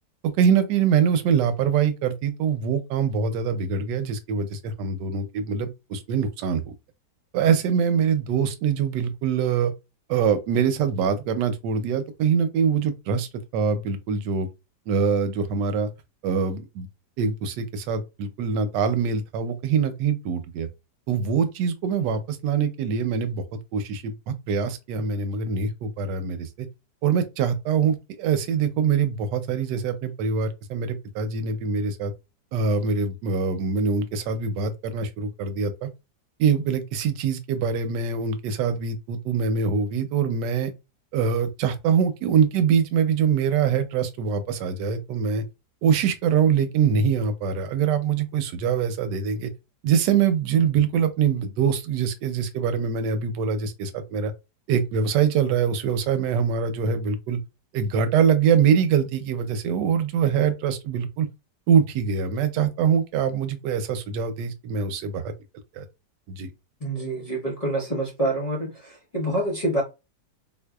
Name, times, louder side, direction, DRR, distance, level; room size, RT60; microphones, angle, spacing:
voice 1, 0.2-6.7 7.3-9.7 10.1-14.5 14.9-15.9 16.2-16.9 17.2-20.7 21.1-26.7 27.0-32.1 32.5-35.9 36.4-40.7 41.1-45.4 45.8-49.5 49.8-54.3 54.7-57.4 57.7-61.3 61.7-65.3 65.7-65.8 66.3-66.5, right 6 dB, 90° right, 1.2 m, -24 dB
voice 2, 66.8-69.8, right 1 dB, 35° left, 0.6 m, -27 dB
3.7 x 2.6 x 2.2 m
omnidirectional pair, 1.8 m